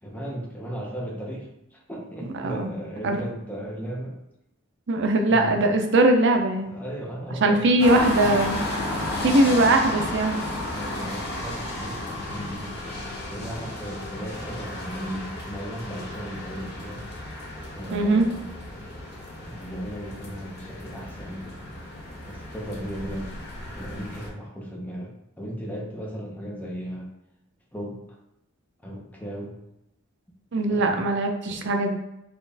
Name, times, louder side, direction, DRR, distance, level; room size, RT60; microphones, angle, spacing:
voice 1, 0.0-4.2 5.3-5.6 6.7-7.8 10.7-13.0 13.3-17.1 17.7-18.5 19.4-21.6 22.3-23.3 23.7-27.1 27.7-28.0 28.8-29.6 30.7-31.0, equal, 5° left, -3 dB, 0.7 m, -36 dB
voice 2, 4.9-6.8 7.4-8.6 9.2-10.4 17.9-18.3 30.5-32.0, right 2 dB, 55° right, 4 dB, 0.5 m, -21 dB
sound 1, 7.8-24.3, left 1 dB, 45° left, 0.8 m, -33 dB
4.2 x 2.4 x 3.4 m, 0.89 s
head